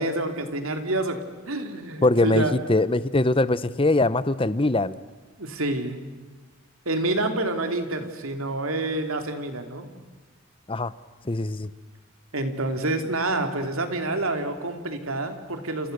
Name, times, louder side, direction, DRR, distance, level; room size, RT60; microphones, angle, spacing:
voice 1, 0.0-2.6 5.4-6.1 6.8-9.9 12.3-15.9, right 2 dB, 75° right, 6 dB, 3.0 m, -28 dB
voice 2, 2.0-5.0 10.7-10.9 11.2-11.7, left 2 dB, 25° left, 16 dB, 0.8 m, -22 dB
30.0 x 27.5 x 6.8 m, 1.4 s
head